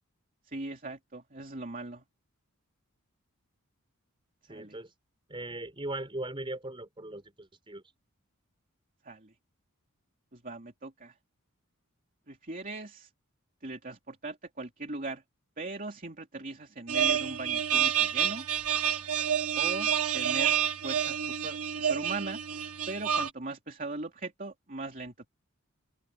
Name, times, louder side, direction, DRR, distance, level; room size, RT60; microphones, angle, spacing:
voice 1, 0.5-2.0 4.5-4.8 9.0-9.3 10.3-11.1 12.3-13.1 13.6-15.2 15.6-18.4 19.6-19.9 20.1-22.4 22.9-25.3, right 2 dB, 40° right, 2.9 m, -39 dB
voice 2, 4.5-4.9 5.3-7.8, right 1 dB, 25° right, 4.7 m, -39 dB
sound 1, 16.9-23.3, right 9 dB, 85° right, 1.5 m, -28 dB
head